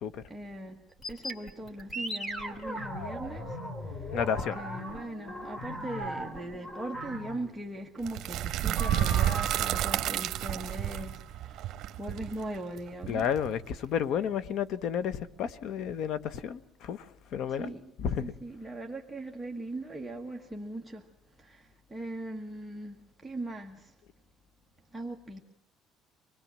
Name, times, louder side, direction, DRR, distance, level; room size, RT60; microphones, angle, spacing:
voice 1, 0.3-0.8 1.1-4.2 4.5-13.3 17.5-17.9 18.2-24.0 24.9-25.4, right 1 dB, 5° right, 0 dB, 1.4 m, -40 dB
sound 1, 1.0-7.6 8.8-11.3, right 1 dB, 15° left, 2.7 m, -39 dB
voice 2, 4.1-4.6 13.1-17.1 17.3-17.7 18.0-18.3, left 8 dB, 55° left, 15 dB, 1.1 m, -31 dB
sound 2, 8.0-13.9, right 12 dB, 55° right, 1.4 m, -30 dB
25.5 x 21.0 x 7.5 m, 0.74 s
cardioid pair, 155°, 0 cm